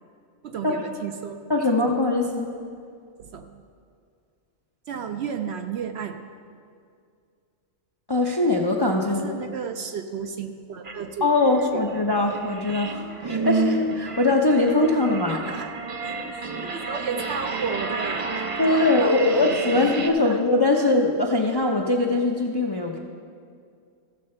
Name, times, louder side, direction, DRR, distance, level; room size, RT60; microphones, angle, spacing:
voice 1, 0.4-1.4 3.2-3.6 4.9-6.2 9.1-11.3 11.7-11.8 15.3-15.7 16.0-20.4 20.8-21.0, right 6 dB, 65° right, 6 dB, 0.8 m, -33 dB
voice 2, 1.5-2.5 8.1-9.3 11.2-15.4 18.6-23.0, left 2 dB, 30° left, 1 dB, 0.4 m, -22 dB
sound 1, 10.8-10.9 11.4-20.1, right 2 dB, 45° right, 0.4 m, -30 dB
14.5 x 6.6 x 4.3 m, 2.2 s
omnidirectional pair, 1.3 m